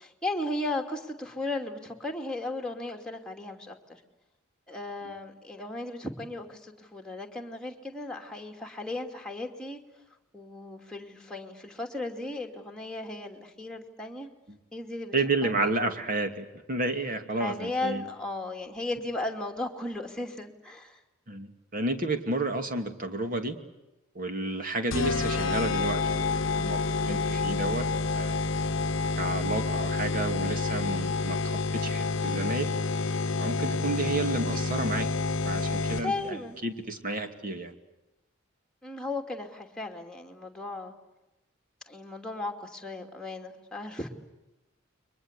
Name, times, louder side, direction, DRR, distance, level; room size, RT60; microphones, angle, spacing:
voice 1, 0.0-4.0 4.7-9.8 10.3-14.3 14.7-15.1 15.4-15.9 17.4-21.0 36.0-36.6 38.8-40.9 41.9-44.1, left 2 dB, 5° left, 3 dB, 2.7 m, -36 dB
voice 2, 15.1-18.0 21.3-23.6 24.1-27.8 28.1-28.4 29.2-32.7 33.4-35.1 35.4-36.4 36.6-37.7, right 2 dB, 40° right, 6 dB, 2.6 m, -31 dB
sound 1, 24.9-36.3, left 3 dB, 65° left, 0.9 m, -28 dB
30.0 x 23.5 x 8.3 m, 0.97 s
head